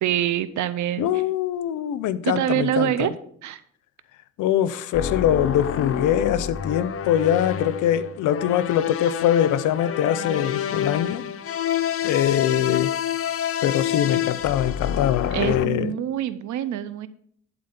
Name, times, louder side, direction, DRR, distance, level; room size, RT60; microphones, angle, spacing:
voice 1, 0.0-1.1 2.2-3.1 3.4-3.6 15.3-17.1, right 11 dB, 70° right, 0.6 m, -25 dB
voice 2, 1.0-3.1 4.4-11.2 12.0-12.9 13.6-15.9, left 10 dB, 85° left, 0.6 m, -23 dB
sound 1, 4.9-15.7, left 9 dB, 50° left, 0.7 m, -28 dB
11.5 x 4.0 x 5.8 m
cardioid pair, 90°, 30 cm